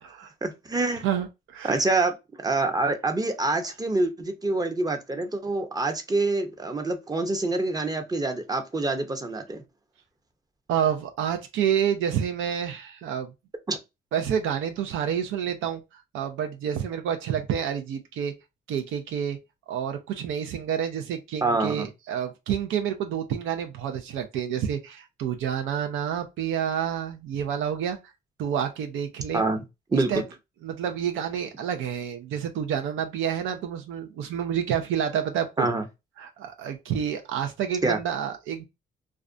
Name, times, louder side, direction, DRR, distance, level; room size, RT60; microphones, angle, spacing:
voice 1, 0.4-1.0 1.7-9.6 13.7-13.8 21.4-21.9 29.3-29.6 29.9-30.2 35.6-35.8 37.8-38.0, right 2 dB, 20° right, 0.6 m, -26 dB
voice 2, 1.0-1.8 10.7-13.3 14.1-18.3 18.7-19.4 19.7-28.0 28.4-29.4 29.9-30.2 30.6-35.7 36.2-38.6, right 8 dB, 80° right, 0.5 m, -29 dB
2.4 x 2.1 x 2.4 m
cardioid pair, 90°, 20 cm